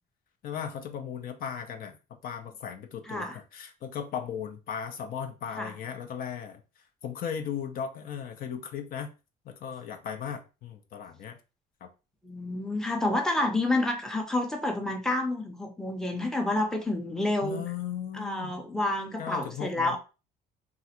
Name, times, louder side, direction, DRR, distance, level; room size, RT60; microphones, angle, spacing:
voice 1, 0.4-6.6 7.0-9.1 9.5-11.4 11.8-11.9 17.4-18.6 19.2-20.0, left 8 dB, 60° left, 0.5 m, -37 dB
voice 2, 3.1-3.4 5.6-5.7 12.2-17.6 18.1-20.0, left 2 dB, 5° left, 0.6 m, -29 dB
3.1 x 2.5 x 2.8 m
cardioid pair, 110°, 17 cm